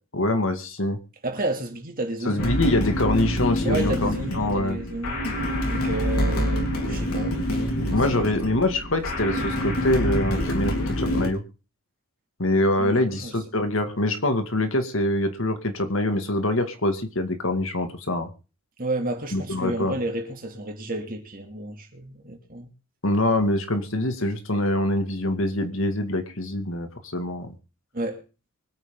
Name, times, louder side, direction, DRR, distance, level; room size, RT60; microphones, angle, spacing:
voice 1, 0.1-1.0 2.3-4.8 7.9-11.4 12.4-18.3 19.3-20.0 23.0-27.5, left 1 dB, 65° left, 2.2 m, -24 dB
voice 2, 1.2-2.5 3.6-5.2 5.7-7.7 8.1-8.5 12.8-13.3 13.6-13.7 18.8-22.7 27.9-28.2, right 2 dB, 40° right, 2.8 m, -31 dB
sound 1, 2.4-11.3, left 1 dB, 85° left, 3.9 m, -26 dB
24.0 x 9.0 x 3.9 m
head